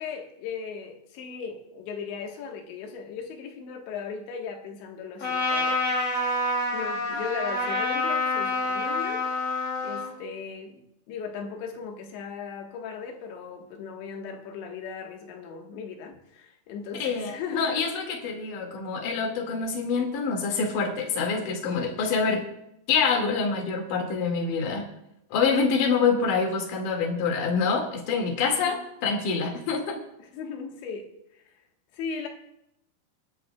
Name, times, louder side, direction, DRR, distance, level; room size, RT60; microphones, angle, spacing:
voice 1, 0.0-5.8 6.7-9.3 9.8-17.9 28.5-28.8 30.2-31.4 31.9-32.3, left 6 dB, 75° left, 3.6 m, -37 dB
Trumpet, 5.2-10.1, left 2 dB, 40° left, 2.7 m, -27 dB
voice 2, 17.0-22.4 22.9-24.9 25.3-30.0, left 5 dB, 55° left, 3.1 m, -26 dB
28.5 x 10.5 x 2.3 m
omnidirectional pair, 5.4 m